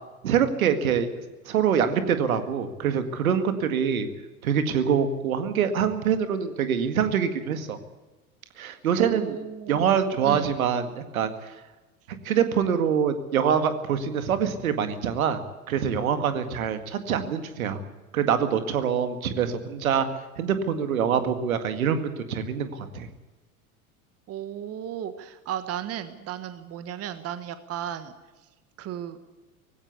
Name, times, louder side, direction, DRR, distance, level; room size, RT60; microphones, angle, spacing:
voice 1, 0.2-1.1 1.5-4.1 4.4-7.8 8.6-9.4 9.7-11.5 12.2-15.4 15.7-17.8 18.1-20.1 20.4-23.1, right 7 dB, 70° right, 9 dB, 2.0 m, -25 dB
voice 2, 9.0-9.7 10.2-10.5 24.3-28.1 28.8-29.2, right 10 dB, 35° right, 11 dB, 1.5 m, -34 dB
18.5 x 16.5 x 8.4 m, 1.2 s
figure-of-eight pair, 80°, 44 cm